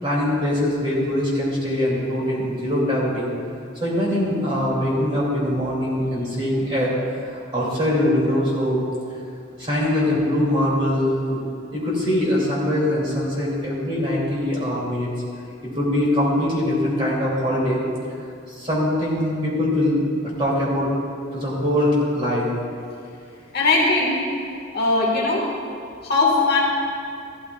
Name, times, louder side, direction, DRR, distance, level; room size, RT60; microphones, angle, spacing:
voice 1, 0.0-3.3 3.8-8.8 9.6-11.4 11.7-15.1 15.6-17.8 18.5-20.0 20.2-20.9 21.3-22.5, left 1 dB, 25° right, -5 dB, 2.6 m, -22 dB
voice 2, 23.5-24.2 24.7-25.4 26.0-26.6, left 3 dB, 50° left, -3 dB, 1.7 m, -19 dB
14.0 x 12.5 x 2.4 m, 2.4 s
head